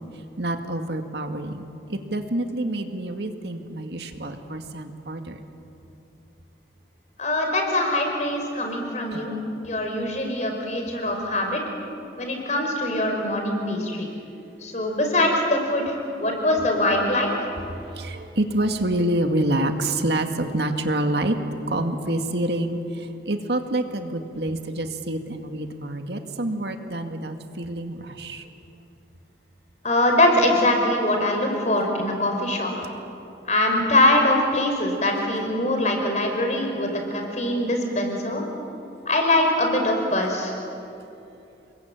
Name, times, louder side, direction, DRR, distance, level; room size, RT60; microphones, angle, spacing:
voice 1, 0.4-5.4 9.1-9.2 17.7-21.4 21.7-28.5, right 1 dB, 65° right, 5 dB, 2.1 m, -27 dB
voice 2, 7.2-9.4 9.6-11.6 12.2-14.1 14.6-17.5 29.8-32.7 33.5-38.4 39.1-40.6, left 1 dB, 40° left, 2 dB, 5.3 m, -23 dB
29.5 x 22.0 x 9.0 m, 2.7 s
head